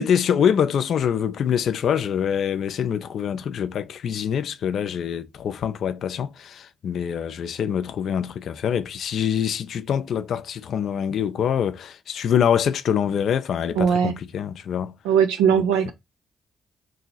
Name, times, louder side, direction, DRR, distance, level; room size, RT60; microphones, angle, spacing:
voice 1, 0.0-14.9 15.5-15.9, left 8 dB, 65° left, 0.4 m, -25 dB
voice 2, 13.8-14.1 15.1-15.9, right 7 dB, 85° right, 0.3 m, -19 dB
2.9 x 2.7 x 3.9 m
hypercardioid pair, 45°, 0 cm